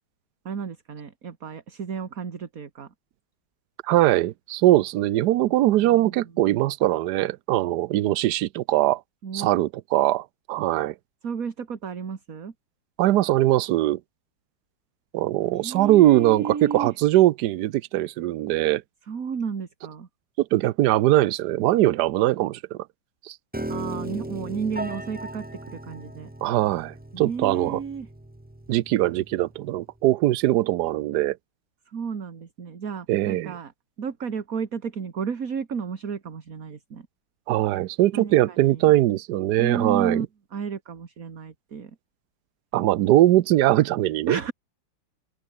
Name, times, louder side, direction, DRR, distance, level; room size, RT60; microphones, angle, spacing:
voice 1, 0.5-2.9 5.8-6.2 9.2-9.5 11.2-12.5 15.5-16.9 19.1-20.1 23.7-26.3 27.1-28.1 31.9-33.7 34.0-37.1 38.1-38.9 39.6-40.3 40.5-41.9 44.3-44.5, right 6 dB, 45° right, 2.0 m, -32 dB
voice 2, 3.9-9.0 9.3-10.9 13.0-14.0 15.1-18.8 20.4-22.8 23.3-23.4 26.4-27.8 28.7-31.4 33.1-33.5 37.5-40.3 42.7-44.4, right 15 dB, 70° right, 1.0 m, -21 dB
Piano, 23.5-29.7, right 1 dB, 10° right, 0.5 m, -37 dB
open air
omnidirectional pair, 2.3 m